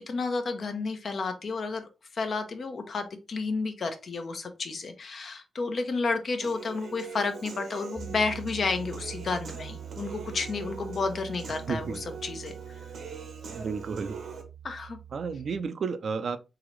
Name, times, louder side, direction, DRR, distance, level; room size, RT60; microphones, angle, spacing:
voice 1, 0.0-1.8 2.1-12.5 14.6-15.0, left 4 dB, 60° left, 0.8 m, -31 dB
Human voice / Piano, 6.4-14.4, right 5 dB, 85° right, 1.0 m, -43 dB
Piano, 8.0-15.6, right 9 dB, 15° right, 0.5 m, -44 dB
voice 2, 11.7-12.0 13.5-14.2 15.1-16.4, right 5 dB, 70° right, 0.4 m, -32 dB
3.8 x 2.9 x 3.1 m
cardioid pair, 80°, 0 cm